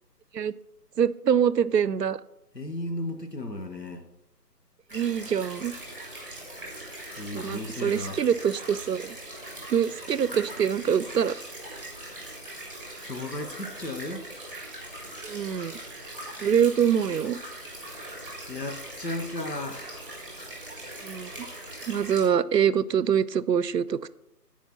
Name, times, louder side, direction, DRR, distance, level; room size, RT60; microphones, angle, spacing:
voice 1, 1.0-2.2 4.9-5.7 7.3-9.2 9.7-11.4 15.2-15.8 16.4-17.4 21.0-21.5 21.9-24.1, right 8 dB, 80° right, 0.6 m, -25 dB
voice 2, 2.5-4.1 7.2-8.3 13.0-14.4 18.5-20.2, left 1 dB, 90° left, 1.3 m, -35 dB
sound 1, 4.9-22.3, right 1 dB, 5° left, 1.2 m, -41 dB
8.3 x 4.5 x 6.0 m
figure-of-eight pair, 155°, 48 cm